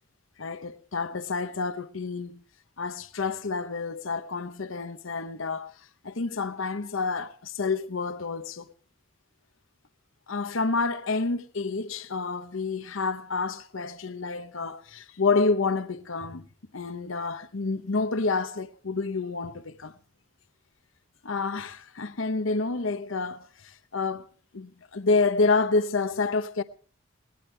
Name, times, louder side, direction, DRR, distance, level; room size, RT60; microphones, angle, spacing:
voice 1, 0.4-2.4 2.8-8.7 10.3-16.5 16.7-19.9 21.2-24.3 24.5-26.6, left 3 dB, 75° left, 0.9 m, -29 dB
21.0 x 19.0 x 3.3 m
head